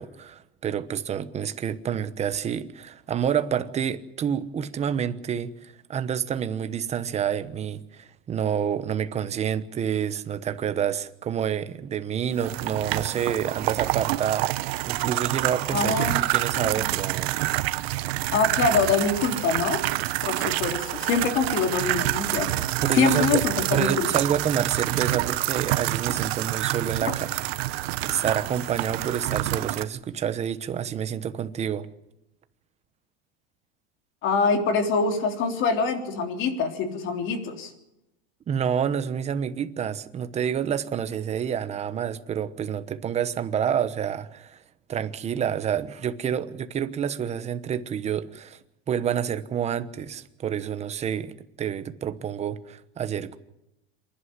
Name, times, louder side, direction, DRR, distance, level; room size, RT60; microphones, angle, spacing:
voice 1, 0.0-17.3 22.8-23.4 23.7-27.4 27.7-31.9 38.5-44.6 44.9-48.6 48.9-53.4, right 8 dB, 20° right, 1.1 m, -28 dB
sound 1, 12.4-29.8, right 17 dB, 80° right, 1.0 m, -27 dB
voice 2, 15.7-16.3 16.8-16.9 18.3-19.8 20.2-22.5 22.9-24.1 34.2-37.7, left 4 dB, 40° left, 3.5 m, -24 dB
27.5 x 11.5 x 9.5 m
supercardioid pair, 155°, 31 cm